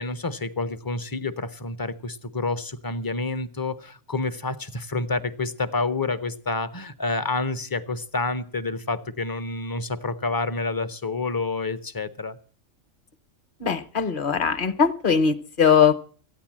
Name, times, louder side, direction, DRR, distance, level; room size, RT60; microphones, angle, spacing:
voice 1, 0.0-12.4, left 3 dB, 25° left, 11 dB, 0.5 m, -28 dB
voice 2, 13.6-15.9, left 6 dB, 45° left, 13 dB, 0.9 m, -20 dB
15.0 x 9.8 x 7.4 m, 0.43 s
omnidirectional pair, 1.4 m